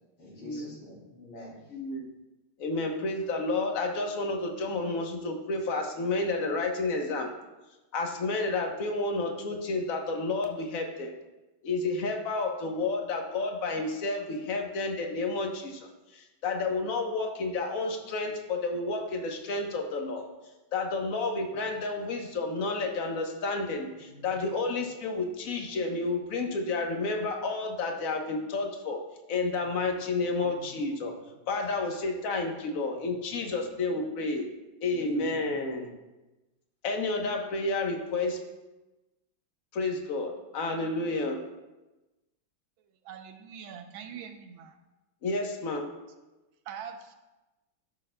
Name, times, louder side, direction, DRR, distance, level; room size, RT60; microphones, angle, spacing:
voice 1, 0.2-1.8 21.5-21.6 24.1-24.3 29.6-29.7 30.3-31.1 31.4-31.5 33.0-33.1 34.9-35.9, left 1 dB, 85° left, -4 dB, 3.3 m, -47 dB
voice 2, 1.7-2.1 2.6-7.3 7.9-11.1 11.6-15.9 16.1-20.2 20.7-29.0 29.3-31.1 31.5-34.5 34.8-35.9 36.8-38.4 39.7-41.4 45.2-45.9, left 3 dB, 50° left, 2 dB, 1.2 m, -30 dB
voice 3, 43.0-44.8 46.6-47.1, right 7 dB, 75° right, 6 dB, 1.3 m, -43 dB
13.5 x 6.5 x 2.2 m, 1.1 s
omnidirectional pair, 2.3 m